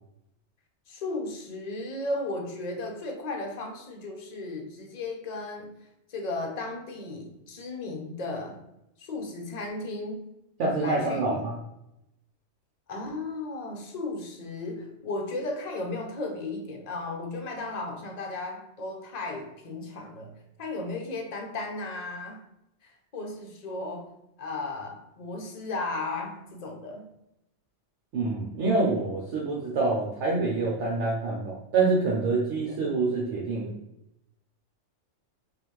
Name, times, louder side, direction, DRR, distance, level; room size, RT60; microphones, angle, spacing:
voice 1, 0.9-5.7 6.1-8.6 9.0-10.3 10.8-11.4 12.9-20.3 20.6-22.4 22.8-24.1 24.4-27.1, left 2 dB, 40° left, 2 dB, 0.7 m, -35 dB
voice 2, 10.6-11.5 28.1-33.7, right 3 dB, 70° right, -3 dB, 1.0 m, -26 dB
5.2 x 2.4 x 3.1 m, 0.85 s
omnidirectional pair, 1.3 m